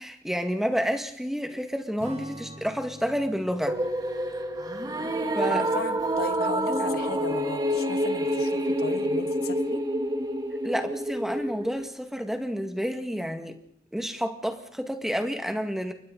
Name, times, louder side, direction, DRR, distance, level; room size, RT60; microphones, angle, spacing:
voice 1, 0.0-3.8 5.3-5.6 10.6-13.6 13.9-15.9, equal, ahead, 5 dB, 2.0 m, -29 dB
Strum, 2.0-6.6, right 1 dB, 40° right, 4.3 m, -47 dB
sound 1, 3.7-11.9, equal, 20° right, 1.6 m, -28 dB
voice 2, 5.5-9.8, left 3 dB, 60° left, 9 dB, 1.6 m, -37 dB
29.5 x 24.0 x 4.1 m, 0.68 s
head